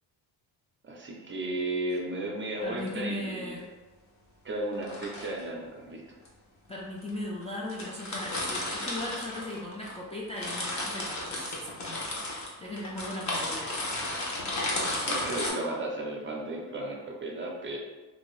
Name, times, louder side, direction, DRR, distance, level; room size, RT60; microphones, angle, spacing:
voice 1, 0.8-3.6 4.4-6.0 15.1-17.8, right 1 dB, 30° right, -1 dB, 0.6 m, -34 dB
sound 1, 2.6-2.9 4.7-5.4 6.3-6.4 7.1-7.2 7.4-7.5 7.7-10.0 10.2-15.5, left 1 dB, 45° left, 0.9 m, -33 dB
voice 2, 2.6-3.7 6.7-12.2 12.6-13.7, left 1 dB, 15° left, -5 dB, 0.4 m, -38 dB
2.8 x 2.6 x 3.1 m, 1.3 s
cardioid pair, 105°, 41 cm